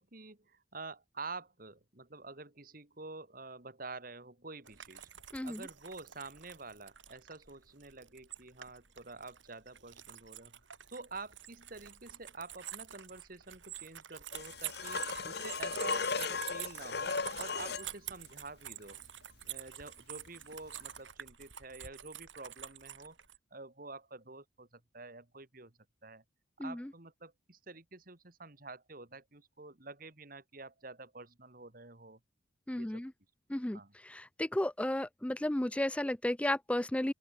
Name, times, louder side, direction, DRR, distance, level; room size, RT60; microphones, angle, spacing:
voice 1, 0.0-5.1 5.4-10.6 10.9-19.0 19.4-23.2 23.5-26.2 26.6-32.2 32.7-33.1 33.7-33.9, right 3 dB, 45° right, 2.4 m, -48 dB
sound 1, 4.6-23.4, right 11 dB, 80° right, 6.1 m, -47 dB
sound 2, 14.3-17.9 20.8-20.9, left 5 dB, 55° left, 1.2 m, -36 dB
voice 2, 32.7-33.1 33.5-37.1, left 1 dB, 5° left, 0.4 m, -33 dB
open air
head